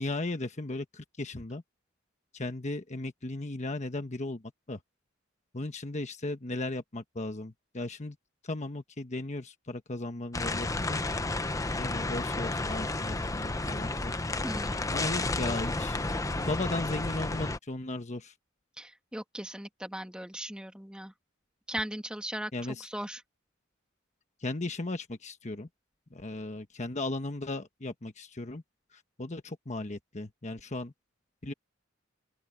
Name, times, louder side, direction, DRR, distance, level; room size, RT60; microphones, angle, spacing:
voice 1, 0.0-1.6 2.3-4.4 4.7-4.8 5.5-8.2 8.4-11.0 11.8-14.1 14.9-16.0 16.3-18.3 22.5-22.9 24.4-25.7 26.1-28.6 29.2-30.9 31.4-31.5, left 2 dB, 35° left, 1.2 m, -36 dB
sound 1, 10.3-17.6, left 2 dB, 15° left, 0.7 m, -32 dB
voice 2, 14.4-14.7 18.8-21.1 21.7-22.5 22.8-23.2, right 1 dB, 5° right, 1.7 m, -38 dB
open air
head